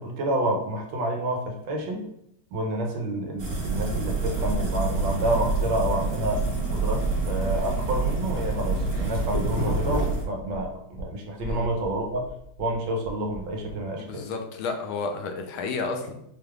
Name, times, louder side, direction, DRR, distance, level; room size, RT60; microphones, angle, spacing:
voice 1, 0.0-2.1 2.5-6.4 6.7-12.2 12.6-14.2, right 1 dB, 75° right, 1 dB, 1.4 m, -29 dB
sound 1, 3.4-10.2, right 3 dB, 50° right, 1.1 m, -27 dB
sound 2, 8.7-11.1 11.4-13.8, equal, 65° left, 0.3 m, -34 dB
voice 2, 14.0-16.1, left 4 dB, 85° left, 5 dB, 1.4 m, -31 dB
5.0 x 3.1 x 2.3 m, 0.76 s
omnidirectional pair, 2.2 m